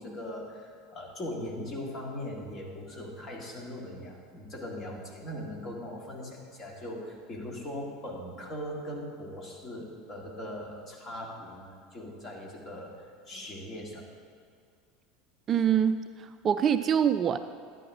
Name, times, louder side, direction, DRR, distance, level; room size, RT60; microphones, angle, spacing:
voice 1, 0.0-14.1, left 1 dB, 35° left, -1 dB, 2.2 m, -40 dB
voice 2, 15.5-17.4, right 8 dB, 35° right, 11 dB, 0.3 m, -25 dB
11.5 x 9.2 x 3.6 m, 2.3 s
figure-of-eight pair, 75°, 0 cm